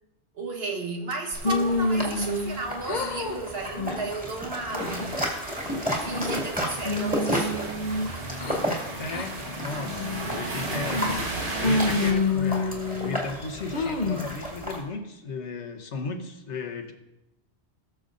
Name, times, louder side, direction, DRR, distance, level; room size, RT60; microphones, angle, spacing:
voice 1, 0.3-5.1 6.0-7.8, right 3 dB, 60° right, 1.5 m, -33 dB
sound 1, 1.3-14.8, equal, 5° right, 2.1 m, -33 dB
sound 2, 1.4-2.6 2.8-3.4 3.8-4.1 4.6-5.2 5.7-6.5 6.8-8.6 9.1-9.3 9.8-10.3 10.9-11.3 11.6-13.2 13.7-14.3, left 3 dB, 45° left, 0.9 m, -28 dB
sound 3, 4.8-12.1, right 2 dB, 90° right, 1.8 m, -35 dB
voice 2, 9.0-16.9, left 4 dB, 85° left, 1.4 m, -35 dB
19.0 x 6.8 x 2.6 m
omnidirectional pair, 1.2 m